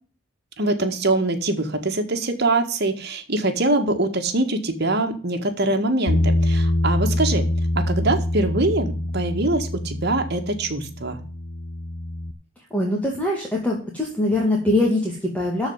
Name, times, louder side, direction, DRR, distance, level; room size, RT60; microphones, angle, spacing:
voice 1, 0.6-7.5 7.7-11.2, right 2 dB, 55° right, 5 dB, 1.8 m, -23 dB
Bass guitar, 6.1-12.3, left 1 dB, 75° left, 0.9 m, -24 dB
voice 2, 12.7-15.7, left 1 dB, 10° left, -2 dB, 2.2 m, -22 dB
13.0 x 4.8 x 7.9 m, 0.40 s
head